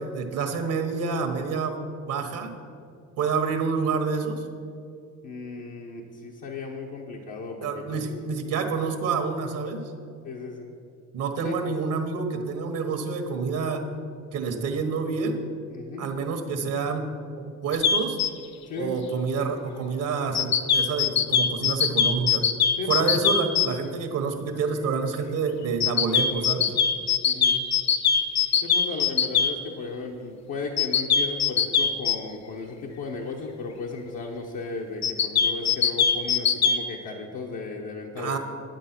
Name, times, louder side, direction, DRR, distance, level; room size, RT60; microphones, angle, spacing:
voice 1, 0.0-1.8 2.1-2.5 3.2-4.4 7.6-9.8 11.1-13.9 14.3-15.4 16.0-17.1 17.4-18.2 18.8-22.4 22.9-26.7 38.2-38.4, right 5 dB, 85° right, 5 dB, 1.3 m, -28 dB
voice 2, 5.2-8.0 10.2-10.8 11.4-11.6 15.7-16.1 18.7-19.0 22.8-23.1 27.2-27.6 28.6-38.4, left 3 dB, 80° left, -1 dB, 1.0 m, -35 dB
sound 1, 17.7-18.3 20.3-23.7 25.8-29.5 30.8-32.1 35.0-36.8, left 7 dB, 60° left, 0.7 m, -21 dB
10.5 x 8.0 x 5.9 m, 2.5 s
cardioid pair, 95°, 31 cm